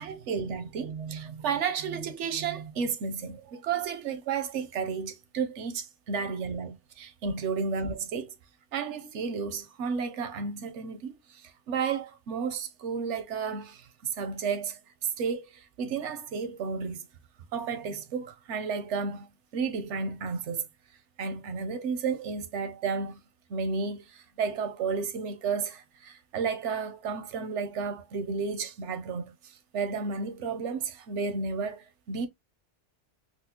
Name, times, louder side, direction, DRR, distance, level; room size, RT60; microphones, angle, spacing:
voice 1, 0.0-8.3 8.7-17.1 17.5-19.3 19.5-20.7 21.2-23.2 23.5-32.3, right 5 dB, 80° right, 1.0 m, -32 dB
4.1 x 2.0 x 2.8 m
omnidirectional pair, 1.2 m